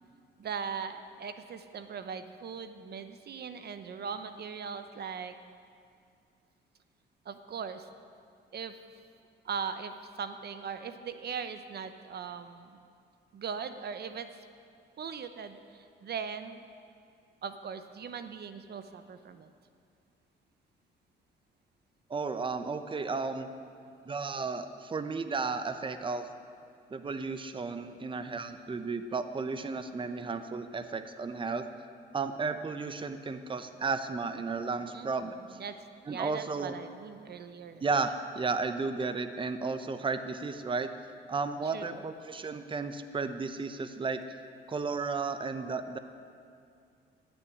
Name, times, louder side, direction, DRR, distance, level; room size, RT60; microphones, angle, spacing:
voice 1, 0.4-5.3 7.3-7.9 8.5-8.8 9.4-12.7 13.3-14.3 15.0-16.6 17.4-19.5 34.9-35.1 35.6-35.7 36.1-37.8 41.7-42.0, right 6 dB, 55° right, 9 dB, 0.8 m, -39 dB
voice 2, 22.1-23.5 24.1-26.3 26.9-31.7 32.1-35.6 36.1-36.7 37.8-40.9 41.3-44.2 44.7-46.0, right 4 dB, 25° right, 9 dB, 0.8 m, -33 dB
16.0 x 7.2 x 9.9 m, 2.3 s
cardioid pair, 90°, 20 cm